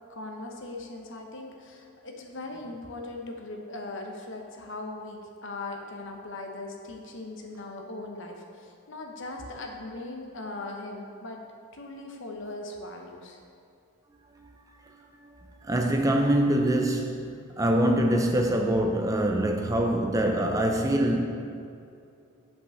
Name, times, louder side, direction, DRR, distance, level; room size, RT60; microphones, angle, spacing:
voice 1, 0.1-11.4 11.7-13.4, left 2 dB, 55° left, 2 dB, 0.9 m, -39 dB
voice 2, 14.8-21.2, right 1 dB, 15° right, 3 dB, 0.3 m, -25 dB
5.7 x 5.3 x 6.4 m, 2.5 s
head